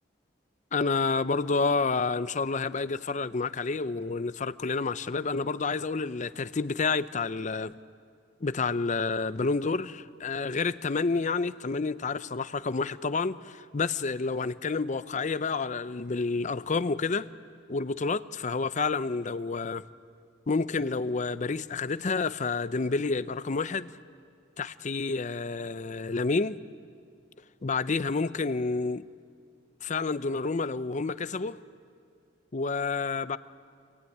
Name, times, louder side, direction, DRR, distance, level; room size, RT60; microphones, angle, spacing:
voice 1, 0.7-7.7 8.4-17.3 17.7-19.8 20.5-23.9 24.6-26.6 27.6-29.0 29.8-31.6 32.5-33.4, left 4 dB, 40° left, 0.6 m, -29 dB
26.0 x 18.5 x 9.3 m
head